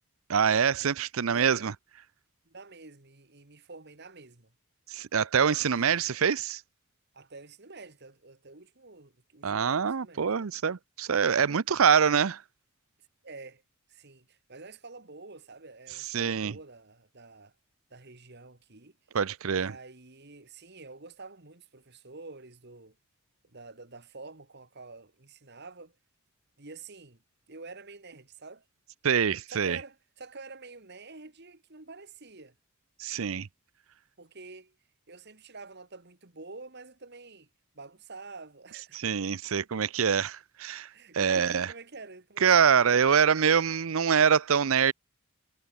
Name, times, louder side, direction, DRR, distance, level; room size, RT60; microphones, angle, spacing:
voice 1, 0.3-1.7 4.9-6.6 9.4-12.4 16.1-16.5 19.1-19.7 29.0-29.8 33.0-33.5 38.9-40.9 41.1-41.7 42.4-44.9, right 7 dB, 70° right, 0.6 m, -25 dB
voice 2, 1.3-1.7 2.5-4.5 5.6-6.0 7.1-10.4 13.2-13.6 13.9-17.5 17.9-19.0 19.5-23.0 23.4-25.9 26.6-27.2 27.5-28.6 29.5-32.5 34.2-34.8 35.1-37.5 37.7-39.3 40.9-43.2, right 3 dB, 50° right, 2.1 m, -48 dB
head